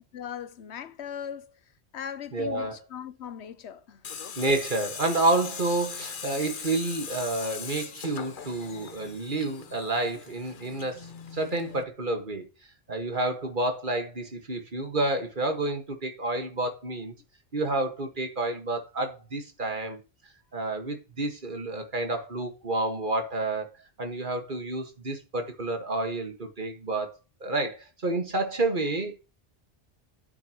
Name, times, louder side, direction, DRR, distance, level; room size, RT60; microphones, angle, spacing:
voice 1, 0.1-1.5 1.9-4.0, left 8 dB, 85° left, 1.1 m, -39 dB
voice 2, 2.3-2.8 4.4-12.5 12.9-17.1 17.5-20.0 20.5-29.2, right 2 dB, 50° right, 1.9 m, -29 dB
Tools, 4.0-11.8, left 7 dB, 55° left, 0.9 m, -40 dB
9.8 x 8.3 x 3.0 m
omnidirectional pair, 1.1 m